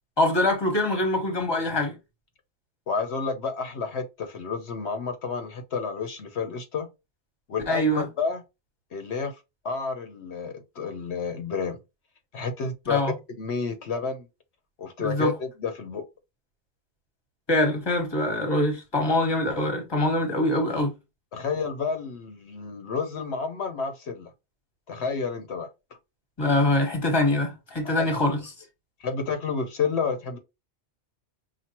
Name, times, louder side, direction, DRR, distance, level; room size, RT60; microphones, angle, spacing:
voice 1, 0.2-1.9 7.7-8.1 12.9-13.1 15.0-15.3 17.5-20.9 26.4-28.5, left 1 dB, 25° left, 1.3 m, -24 dB
voice 2, 2.9-6.9 7.5-8.4 8.9-9.4 9.6-11.8 12.3-13.0 13.4-14.3 14.8-16.0 21.3-24.3 24.9-25.7 28.0-28.3 29.0-30.4, left 5 dB, 70° left, 1.1 m, -30 dB
5.8 x 2.4 x 2.9 m
omnidirectional pair, 1.2 m